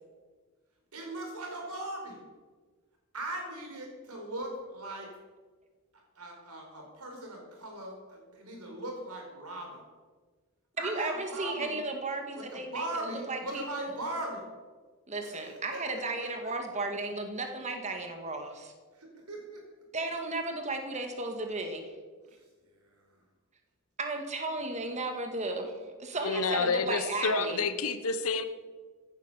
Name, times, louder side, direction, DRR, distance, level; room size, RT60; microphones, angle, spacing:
voice 1, 0.9-2.2 3.1-5.1 5.9-9.8 10.8-11.8 12.3-14.4 15.2-15.8 16.2-16.5 18.9-19.6 22.2-23.2 24.5-24.6 26.1-26.4, right 1 dB, 80° right, 1 dB, 4.8 m, -40 dB
voice 2, 10.8-12.9 13.3-13.9 15.1-18.7 19.9-21.9 24.0-27.6, right 2 dB, 30° right, 4 dB, 1.9 m, -34 dB
voice 3, 26.2-28.4, left 4 dB, 70° left, 11 dB, 1.1 m, -29 dB
15.5 x 10.5 x 7.0 m, 1.4 s
head